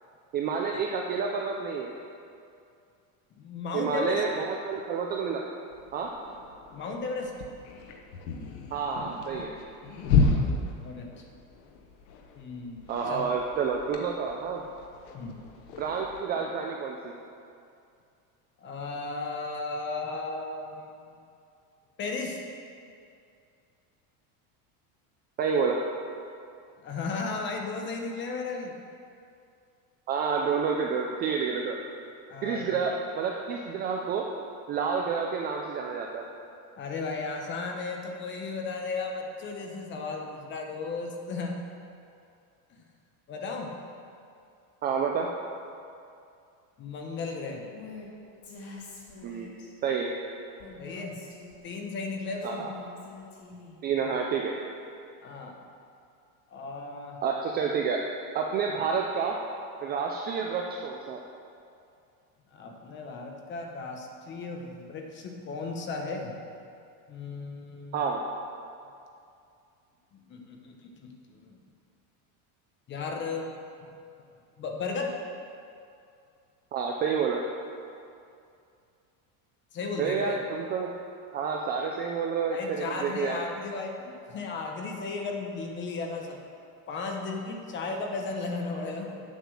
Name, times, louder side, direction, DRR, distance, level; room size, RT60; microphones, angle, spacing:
voice 1, 0.3-1.9 3.7-5.4 5.9-6.1 8.7-9.5 12.9-14.6 15.8-17.2 25.4-25.8 30.1-31.8 32.4-34.3 34.7-36.3 44.8-45.3 49.2-49.6 49.8-50.1 52.4-52.7 53.8-54.5 57.2-58.0 58.3-59.4 59.8-61.2 67.9-68.2 76.7-77.4 80.0-80.9 81.3-83.4, right 5 dB, 25° right, 0 dB, 0.3 m, -29 dB
voice 2, 3.3-4.2 6.7-7.3 10.2-11.1 12.3-13.3 15.1-15.4 18.6-20.9 22.0-22.4 26.8-28.7 32.3-32.8 36.8-41.6 42.7-42.8 43.3-43.7 46.8-47.7 50.8-51.2 51.6-52.7 55.2-55.6 56.5-57.2 58.7-58.8 62.5-66.3 67.1-68.1 70.1-71.6 72.9-73.5 74.6-75.1 79.7-80.4 82.5-86.4 86.9-89.2, left 4 dB, 25° left, 2 dB, 1.0 m, -35 dB
sound 1, 5.7-16.2, left 4 dB, 85° left, 1.3 m, -32 dB
Female speech woman speaking, 47.7-48.1 48.4-49.7 50.6-51.7 52.2-53.8, left 3 dB, 45° left, 2.0 m, -46 dB
8.4 x 8.0 x 6.3 m, 2.5 s
cardioid pair, 170°, 42 cm